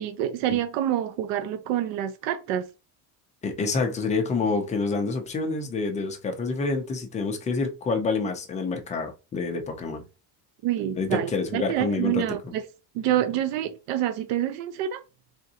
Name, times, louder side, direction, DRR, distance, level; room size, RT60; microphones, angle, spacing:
voice 1, 0.0-2.7 10.6-12.6 12.9-15.0, right 11 dB, 70° right, 0.7 m, -27 dB
voice 2, 3.4-10.0 11.0-12.2, left 4 dB, 15° left, 0.4 m, -27 dB
3.8 x 3.5 x 2.7 m
cardioid pair, 165°, 48 cm